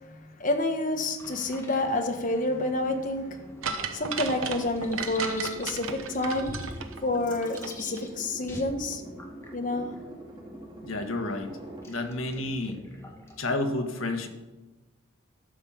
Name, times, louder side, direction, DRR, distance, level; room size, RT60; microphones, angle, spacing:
voice 1, 0.1-3.4 3.9-6.6 7.0-9.0 9.5-9.9, left 2 dB, 40° left, 4 dB, 1.3 m, -29 dB
sound 1, 1.2-13.4, left 1 dB, 15° left, 1.3 m, -48 dB
sound 2, 3.6-7.7 8.0-8.1, right 6 dB, 90° right, 1.0 m, -34 dB
sound 3, 4.3-11.9, right 1 dB, 25° right, 2.1 m, -46 dB
voice 2, 10.8-11.5 11.9-12.8 13.4-14.3, left 2 dB, 80° left, 4 dB, 1.5 m, -30 dB
12.5 x 5.8 x 7.1 m, 1.1 s
head